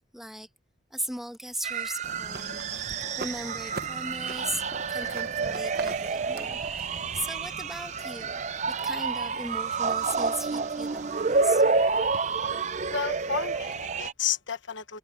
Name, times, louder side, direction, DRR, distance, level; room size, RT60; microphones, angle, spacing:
voice 1, 0.1-0.5 0.9-11.6, equal, ahead, 1.3 m, -38 dB
sound 1, 1.4-1.5 1.8-11.2, left 2 dB, 55° left, 2.8 m, -53 dB
sound 2, 1.6-14.1, right 4 dB, 40° right, 0.6 m, -29 dB
sound 3, 2.0-14.1, right 3 dB, 55° right, 1.0 m, -42 dB
voice 2, 12.9-15.0, left 7 dB, 85° left, 1.3 m, -31 dB
head